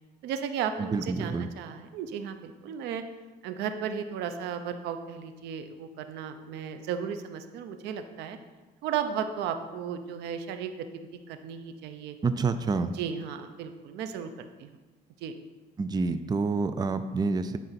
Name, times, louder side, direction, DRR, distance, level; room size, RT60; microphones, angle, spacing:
voice 1, 0.2-3.0 3.4-8.4 8.8-12.2 12.9-14.7 15.2-15.4, right 7 dB, 85° right, 8 dB, 0.8 m, -35 dB
voice 2, 0.8-1.5 12.2-12.9 15.8-17.6, right 4 dB, 25° right, 11 dB, 0.5 m, -28 dB
11.0 x 5.0 x 5.8 m, 1.2 s
cardioid pair, 110°, 17 cm